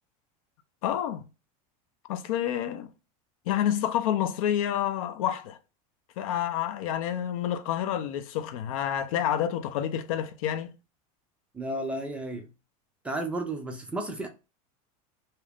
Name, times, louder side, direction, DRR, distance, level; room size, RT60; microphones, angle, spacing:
voice 1, 0.8-1.3 2.1-2.9 3.5-5.6 6.2-10.7, left 10 dB, 75° left, 0.5 m, -28 dB
voice 2, 11.5-12.5 13.0-14.3, right 1 dB, 5° right, 0.3 m, -33 dB
2.7 x 2.5 x 3.3 m
supercardioid pair, 165°, 18 cm